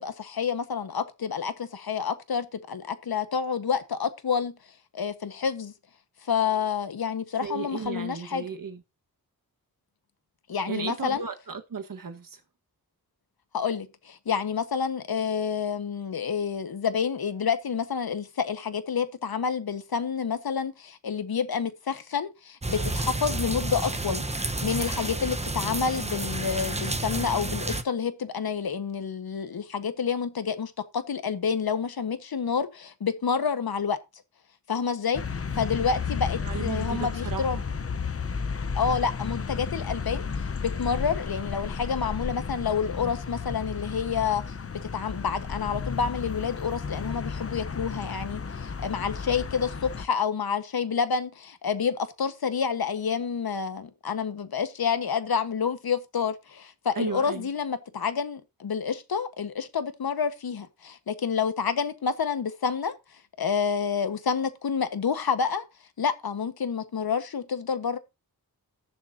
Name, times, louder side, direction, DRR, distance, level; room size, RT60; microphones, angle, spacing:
voice 1, 0.0-4.5 4.9-5.7 6.2-8.4 10.5-11.2 13.5-34.0 34.7-35.2 35.5-37.6 38.7-44.4 44.7-62.9 63.4-65.6 66.0-68.0, left 6 dB, 70° left, 1.5 m, -29 dB
voice 2, 7.4-8.8 10.7-12.4 36.4-37.6 57.0-57.5, right 5 dB, 60° right, 1.6 m, -35 dB
sound 1, 22.6-27.8, right 2 dB, 15° right, 1.1 m, -30 dB
sound 2, 35.1-50.1, left 5 dB, 40° left, 0.9 m, -33 dB
19.0 x 7.2 x 2.8 m
wide cardioid pair, 105°, 38 cm